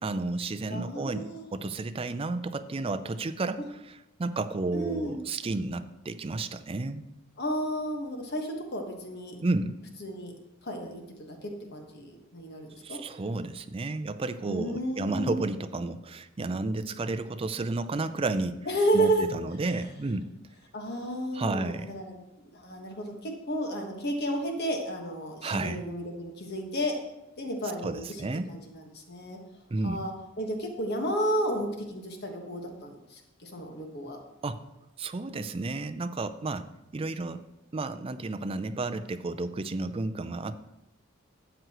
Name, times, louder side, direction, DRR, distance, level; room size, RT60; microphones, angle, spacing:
voice 1, 0.0-1.2 1.5-7.0 9.4-9.7 12.8-18.6 18.9-20.2 21.3-21.9 25.4-25.8 27.8-28.5 29.7-30.0 34.4-34.6 35.0-36.7 36.9-37.4 37.7-40.6, right 2 dB, 25° right, 10 dB, 0.4 m, -32 dB
voice 2, 0.7-1.4 3.6-3.7 4.7-5.2 7.4-9.4 10.0-10.3 10.6-13.0 14.5-15.4 18.7-19.3 19.6-19.7 20.7-22.2 22.5-26.9 27.4-28.0 28.5-29.4 29.8-34.2, right 1 dB, 50° left, 2 dB, 1.4 m, -32 dB
12.5 x 7.9 x 3.0 m, 0.92 s
head